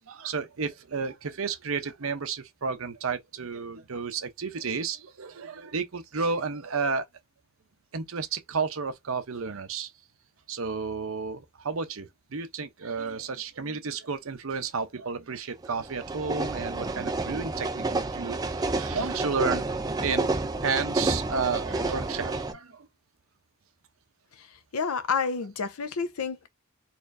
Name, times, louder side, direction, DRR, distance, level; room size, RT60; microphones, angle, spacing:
voice 1, 0.1-7.1 7.9-9.9 10.5-19.7 20.0-20.3 20.6-22.9, right 5 dB, 70° right, 0.7 m, -32 dB
sound 1, 15.6-22.5, right 2 dB, 20° right, 0.4 m, -30 dB
voice 2, 24.3-26.5, left 5 dB, 85° left, 0.6 m, -30 dB
4.2 x 2.6 x 2.6 m
head